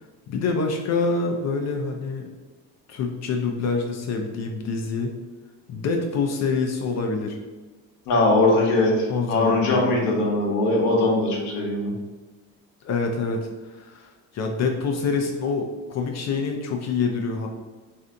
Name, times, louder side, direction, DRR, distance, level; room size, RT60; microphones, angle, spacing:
voice 1, 0.3-2.3 2.9-5.1 5.7-7.4 9.1-10.0 12.8-17.5, left 4 dB, 45° left, 3 dB, 0.4 m, -26 dB
voice 2, 8.1-11.9, left 2 dB, 80° left, -2 dB, 0.9 m, -21 dB
3.2 x 2.6 x 2.5 m, 1.2 s
supercardioid pair, 100°, 39 cm